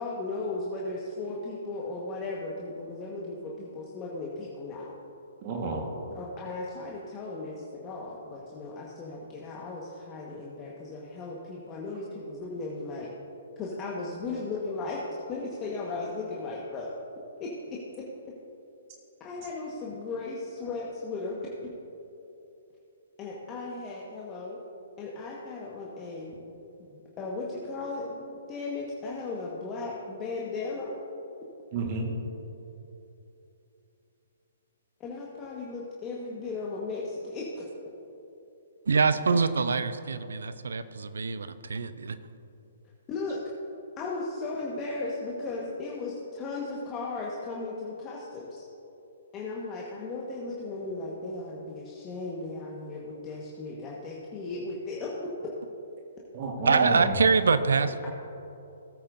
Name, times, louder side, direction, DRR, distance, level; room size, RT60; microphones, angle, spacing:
voice 1, 0.0-4.9 6.1-13.1 13.6-15.0 15.3-16.9 17.4-17.5 19.2-21.4 23.2-24.6 25.0-26.3 26.8-30.9 35.0-37.7 43.1-43.4 44.0-48.7 49.3-55.5, left 3 dB, 25° left, -4 dB, 1.4 m, -36 dB
voice 2, 5.4-5.8 31.7-32.1 56.3-57.2, right 3 dB, 40° right, 0 dB, 1.5 m, -30 dB
voice 3, 38.9-42.2 56.7-58.1, right 5 dB, 75° right, 12 dB, 0.6 m, -25 dB
17.5 x 8.8 x 2.6 m, 2.9 s
hypercardioid pair, 130°, 0 cm